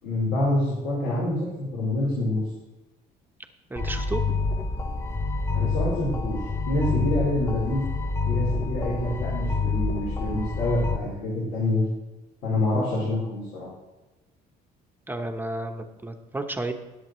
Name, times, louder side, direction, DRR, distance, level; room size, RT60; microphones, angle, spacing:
voice 1, 0.0-2.4 5.5-6.4 6.7-7.9 8.3-11.8 12.4-13.7, left 1 dB, 90° left, -7 dB, 4.0 m, -26 dB
voice 2, 3.7-4.2 15.1-16.7, right 2 dB, 10° right, 5 dB, 0.9 m, -32 dB
sound 1, 3.8-11.0, left 4 dB, 15° left, 0.6 m, -27 dB
18.5 x 7.8 x 3.1 m, 1.1 s
cardioid pair, 110°, 17 cm